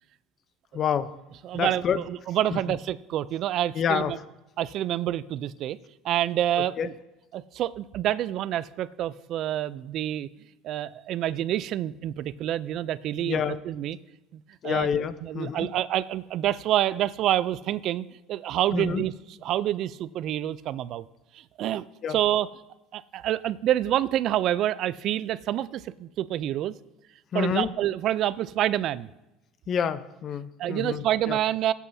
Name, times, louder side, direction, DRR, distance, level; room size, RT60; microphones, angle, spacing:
voice 1, 0.7-1.1 1.5-2.0 2.5-2.6 3.7-4.1 6.6-6.9 13.2-13.6 14.6-15.7 18.7-19.0 22.0-22.2 27.3-27.7 29.7-31.4, left 7 dB, 40° left, 13 dB, 0.7 m, -28 dB
voice 2, 1.4-4.2 4.6-5.8 6.0-6.9 7.3-10.3 10.6-13.4 13.7-14.0 14.3-14.9 15.2-19.1 19.4-21.0 21.3-22.5 22.9-26.7 27.3-29.1 30.6-31.7, right 12 dB, 55° right, 17 dB, 0.4 m, -27 dB
18.0 x 8.3 x 2.7 m, 0.97 s
supercardioid pair, 105°, 0 cm